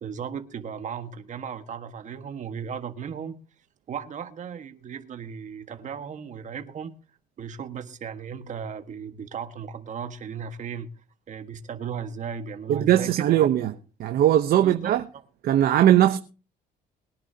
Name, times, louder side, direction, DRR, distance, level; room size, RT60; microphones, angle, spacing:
voice 1, 0.0-3.4 3.9-6.9 7.4-10.9 11.3-13.4 14.6-15.2, right 7 dB, 45° right, 1.6 m, -36 dB
voice 2, 12.7-13.7 14.0-15.0 15.4-16.2, right 12 dB, 65° right, 0.9 m, -19 dB
22.0 x 10.5 x 2.9 m
cardioid pair, 110°, 17 cm